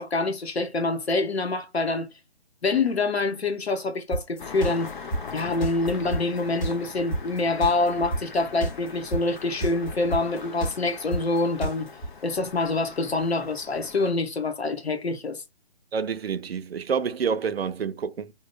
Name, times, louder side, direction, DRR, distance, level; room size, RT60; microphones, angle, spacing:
voice 1, 0.0-2.1 2.6-4.9 5.3-11.9 12.2-15.4, left 3 dB, 75° left, 1.0 m, -26 dB
sound 1, 4.1-12.1, right 1 dB, 20° left, 0.9 m, -28 dB
Engine starting, 4.4-14.1, left 5 dB, 50° left, 0.7 m, -41 dB
voice 2, 15.9-18.3, right 6 dB, 70° right, 0.5 m, -28 dB
2.9 x 2.0 x 2.3 m
figure-of-eight pair, 145°, 32 cm